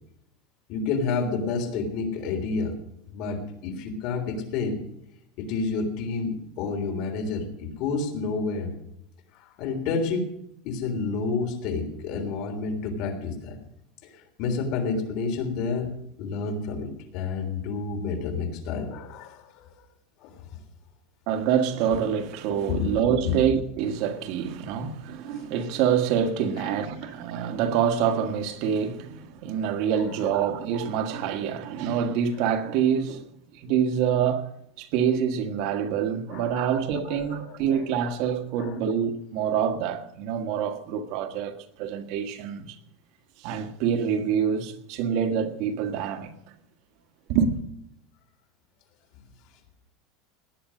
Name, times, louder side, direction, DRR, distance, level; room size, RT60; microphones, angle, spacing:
voice 1, 0.7-2.7 3.1-4.8 5.4-8.7 9.6-10.2 10.6-13.5 14.4-15.9 16.2-19.4 20.2-20.3 22.7-22.9 23.2-23.3 36.3-36.7 37.3-37.6 38.6-38.7, left 4 dB, 50° left, 3.5 m, -29 dB
voice 2, 21.3-33.3 33.5-34.5 34.8-42.8 43.4-46.3 47.3-47.6, right 8 dB, 50° right, 1.5 m, -26 dB
18.5 x 10.5 x 6.4 m
supercardioid pair, 160°, 0 cm